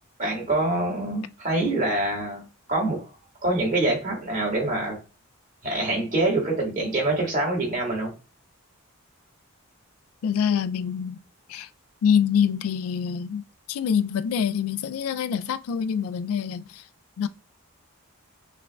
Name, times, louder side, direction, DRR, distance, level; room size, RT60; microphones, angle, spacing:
voice 1, 0.2-3.1 3.4-5.0 5.6-8.1, right 2 dB, 35° right, 1.7 m, -25 dB
voice 2, 10.2-11.2 11.5-11.7 12.0-13.4 13.7-16.8 17.2-17.3, left 7 dB, 75° left, 0.3 m, -25 dB
5.9 x 2.4 x 2.2 m
head